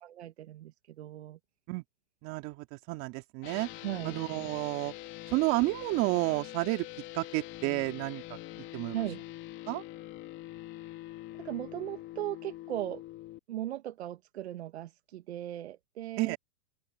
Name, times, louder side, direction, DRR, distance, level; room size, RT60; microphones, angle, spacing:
voice 1, 0.0-1.4 3.8-4.2 8.9-9.2 11.4-13.0 13.5-16.4, right 13 dB, 70° right, 1.9 m, -38 dB
voice 2, 2.2-3.7 4.0-4.9 5.3-6.9 7.1-8.4 8.7-8.9 9.7-9.8 16.2-16.4, right 24 dB, 40° right, 2.7 m, -31 dB
sound 1, 3.4-13.4, left 16 dB, 35° left, 3.1 m, -44 dB
open air
hypercardioid pair, 130°, 34 cm